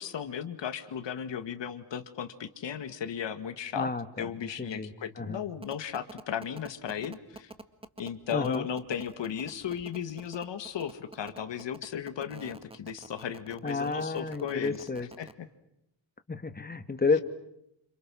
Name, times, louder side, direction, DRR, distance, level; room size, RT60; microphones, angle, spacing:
voice 1, 0.0-3.9 4.2-7.5 8.0-14.9 15.2-15.3, left 8 dB, 60° left, 9 dB, 2.0 m, -36 dB
voice 2, 3.7-4.9 5.2-5.4 8.3-8.7 13.6-15.1 16.3-17.2, left 4 dB, 20° left, 11 dB, 1.8 m, -31 dB
sound 1, 5.6-15.3, right 2 dB, 10° right, 1.7 m, -46 dB
30.0 x 27.5 x 6.3 m, 0.81 s
cardioid pair, 115°, 48 cm